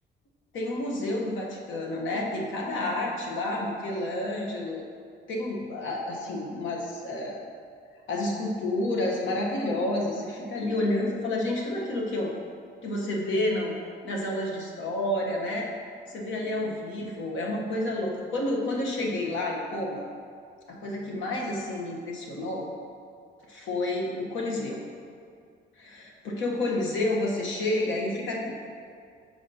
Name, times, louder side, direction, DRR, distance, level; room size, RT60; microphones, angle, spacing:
voice 1, 0.5-4.8 5.3-7.5 8.1-12.3 12.8-13.8 14.0-15.7 16.1-20.0 20.7-22.7 23.5-24.8 25.8-28.5, left 1 dB, 75° left, -1 dB, 1.0 m, -30 dB
7.5 x 4.6 x 2.8 m, 2.2 s
cardioid pair, 90°, 20 cm